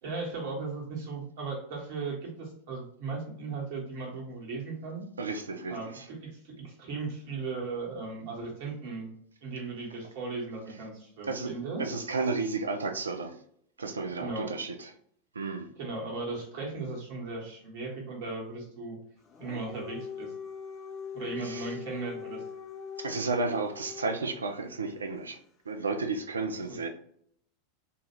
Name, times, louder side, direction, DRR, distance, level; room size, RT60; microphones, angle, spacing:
voice 1, 0.0-5.0 5.7-9.1 9.4-11.8 14.2-14.6 15.8-19.0 19.4-20.3 21.1-22.4 26.6-26.8, right 3 dB, 55° right, -2 dB, 1.3 m, -37 dB
voice 2, 5.2-6.0 11.3-11.5 11.8-13.4 13.8-14.9 15.4-15.7 21.4-21.7 23.0-25.4 25.7-26.9, right 3 dB, 75° right, 5 dB, 0.4 m, -32 dB
Dog, 19.3-24.4, left 7 dB, 30° left, 0.5 m, -42 dB
2.8 x 2.3 x 3.0 m, 0.66 s
figure-of-eight pair, 85°, 0 cm